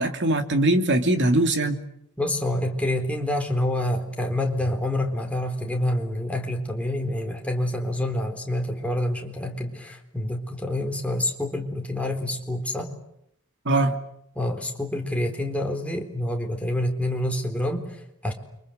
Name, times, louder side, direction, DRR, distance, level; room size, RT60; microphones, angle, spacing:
voice 1, 0.0-1.8 13.6-14.0, right 1 dB, 55° right, 6 dB, 2.8 m, -21 dB
voice 2, 2.2-12.9 14.4-18.3, left 1 dB, 5° left, 2 dB, 3.9 m, -27 dB
29.5 x 25.0 x 8.0 m, 0.75 s
head